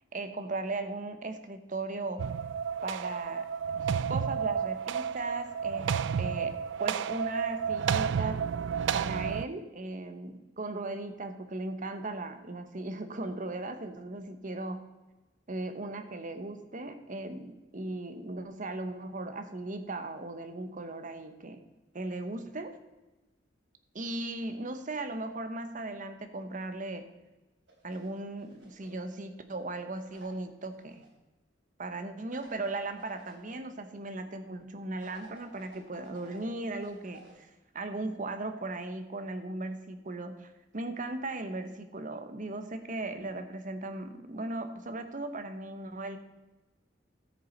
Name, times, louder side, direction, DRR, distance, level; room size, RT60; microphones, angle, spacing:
voice 1, 0.1-2.3 2.8-3.5 3.8-8.4 8.9-14.8 15.5-21.6 21.9-22.8 23.9-27.1 27.8-31.1 31.8-46.2, right 2 dB, 45° right, 8 dB, 1.0 m, -37 dB
sound 1, 2.2-9.5, right 7 dB, 75° right, 0.3 m, -31 dB
sound 2, 27.7-29.1 30.1-31.1 32.3-33.5 35.0-37.4, right 2 dB, 90° right, 3.6 m, -55 dB
13.5 x 6.8 x 4.5 m, 1.1 s
head